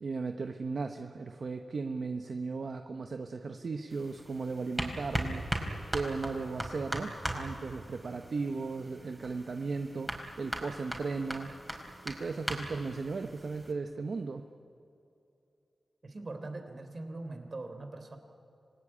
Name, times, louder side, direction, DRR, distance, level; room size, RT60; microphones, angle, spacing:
voice 1, 0.0-11.5 12.0-14.5, right 4 dB, 65° right, 6 dB, 1.0 m, -36 dB
sound 1, 3.9-13.7, right 1 dB, 10° right, 4.7 m, -39 dB
voice 2, 16.0-18.2, right 2 dB, 45° right, 7 dB, 3.3 m, -41 dB
26.5 x 18.0 x 9.9 m, 2.7 s
cardioid pair, 65°, 0 cm